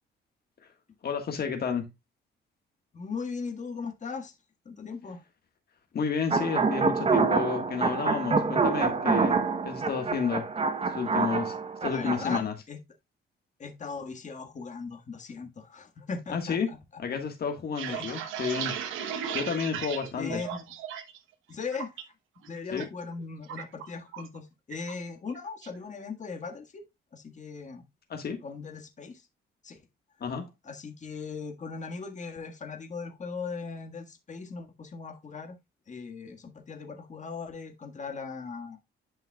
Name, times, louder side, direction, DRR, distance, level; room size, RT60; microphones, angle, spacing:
voice 1, 1.0-1.9 5.9-10.5 10.9-12.5 16.3-16.7 17.0-18.8 19.3-20.4 22.7-22.9 28.1-28.4 30.2-30.5, left 6 dB, 55° left, 1.5 m, -31 dB
voice 2, 2.9-4.3 4.6-5.2 11.8-12.8 13.6-17.0 17.9-18.1 20.2-20.6 21.5-21.9 22.4-26.8 27.1-27.8 28.4-29.3 29.6-29.8 30.6-35.6 35.9-38.8, left 5 dB, 35° left, 1.6 m, -39 dB
sound 1, 6.3-12.4, right 4 dB, 30° right, 0.9 m, -26 dB
sound 2, 17.5-21.2 21.5-22.0 22.4-22.9 23.1-24.4 24.7-24.9 25.3-25.8, right 9 dB, 90° right, 1.1 m, -36 dB
10.0 x 5.5 x 2.3 m
cardioid pair, 90°, 20 cm